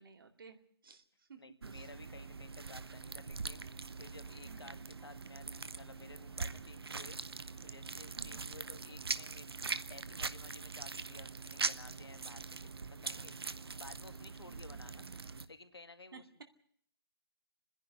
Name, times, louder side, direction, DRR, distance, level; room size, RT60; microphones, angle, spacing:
voice 1, 0.0-1.4 1.7-1.9 4.5-5.1 8.2-8.6 14.5-14.9 16.1-16.2, right 5 dB, 65° right, 7 dB, 2.3 m, -57 dB
voice 2, 1.4-3.7 4.0-7.2 7.6-9.5 9.9-12.7 13.0-13.3 13.8-15.1 15.5-16.4, left 3 dB, 90° left, 9 dB, 2.0 m, -55 dB
sound 1, 1.6-15.5, right 4 dB, 80° right, 1.1 m, -42 dB
28.5 x 10.5 x 9.7 m, 0.64 s
figure-of-eight pair, 155°, 13 cm